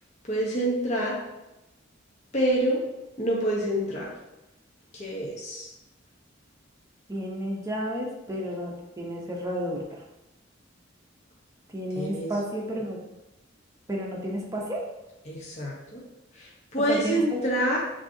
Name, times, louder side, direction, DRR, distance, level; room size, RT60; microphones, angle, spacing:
voice 1, 0.3-1.1 2.3-2.8 3.2-4.1 4.9-5.7 11.9-12.3 15.2-16.0 16.4-17.8, right 1 dB, 35° left, -4 dB, 0.9 m, -27 dB
voice 2, 7.1-10.0 11.7-13.0 13.9-14.9 16.9-17.4, equal, 15° right, -2 dB, 0.7 m, -32 dB
5.9 x 2.8 x 2.7 m, 0.96 s
head